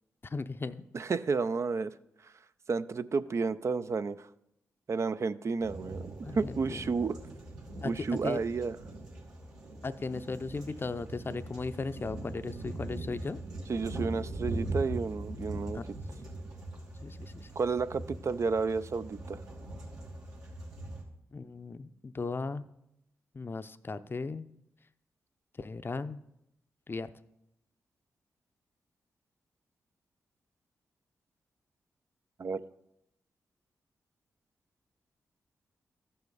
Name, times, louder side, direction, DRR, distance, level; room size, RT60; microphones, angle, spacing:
voice 1, 0.2-0.8 6.2-6.9 7.8-7.9 8.2-8.4 9.8-13.4 15.7-15.8 16.1-16.2 17.0-17.5 21.3-22.7 23.3-24.4 25.6-26.2 26.9-27.1, left 3 dB, 35° left, 12 dB, 0.5 m, -37 dB
voice 2, 0.9-1.9 2.2-2.3 2.7-4.3 4.9-7.2 7.8-8.8 13.7-15.8 17.6-19.4 32.4-32.6, right 4 dB, 50° right, 12 dB, 0.4 m, -31 dB
sound 1, 5.6-21.0, right 1 dB, 85° right, 2.2 m, -41 dB
14.0 x 5.7 x 4.0 m, 0.81 s
supercardioid pair, 40°, 6 cm